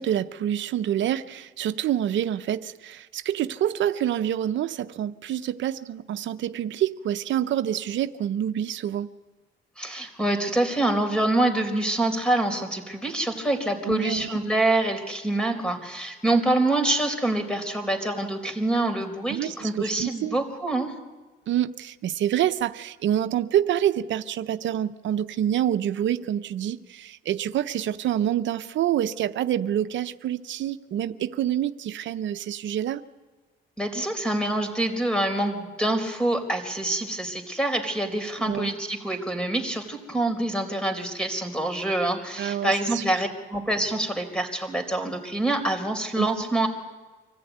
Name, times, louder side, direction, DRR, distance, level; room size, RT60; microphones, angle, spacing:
voice 1, 0.0-9.1 13.9-14.4 19.3-20.4 21.5-33.0 38.5-38.7 42.4-43.2 46.2-46.3, right 11 dB, 70° right, 10 dB, 0.7 m, -27 dB
voice 2, 9.8-20.9 33.8-46.7, right 2 dB, 5° left, 7 dB, 4.1 m, -26 dB
25.0 x 15.0 x 9.3 m, 1.3 s
cardioid pair, 90°, 20 cm